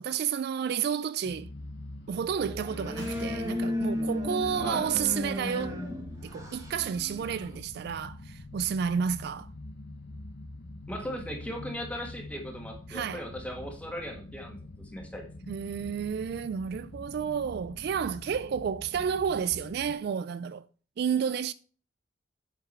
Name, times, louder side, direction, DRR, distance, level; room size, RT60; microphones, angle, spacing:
voice 1, 0.0-1.5 2.1-5.8 6.2-9.5 12.9-13.2 15.5-20.7 21.0-21.5, right 7 dB, 55° right, 0.3 m, -31 dB
sound 1, 1.2-19.9, left 2 dB, 65° left, 0.9 m, -45 dB
sound 2, 2.3-7.6, left 1 dB, 15° right, 1.6 m, -34 dB
sound 3, 2.9-9.8 10.4-10.5 11.7-12.2, left 2 dB, 90° left, 1.8 m, -55 dB
voice 2, 4.6-4.9 10.9-15.3, equal, 5° left, 1.5 m, -38 dB
8.0 x 5.9 x 4.3 m
head